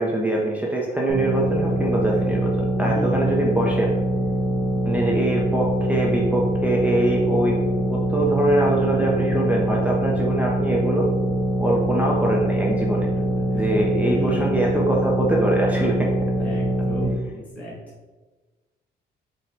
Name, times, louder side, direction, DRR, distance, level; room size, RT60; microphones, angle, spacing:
voice 1, 0.0-3.9 4.8-7.6 7.9-11.1 11.6-13.1 13.5-16.1, right 1 dB, 10° right, -3 dB, 0.5 m, -23 dB
sound 1, 1.1-17.1, right 1 dB, 25° left, 1.0 m, -24 dB
voice 2, 2.1-2.4 2.8-3.4 8.9-9.4 13.2-13.3 13.5-14.6 16.4-17.7, right 1 dB, 10° left, -7 dB, 1.3 m, -34 dB
4.3 x 2.2 x 3.8 m, 1.3 s
cardioid pair, 130°, 18 cm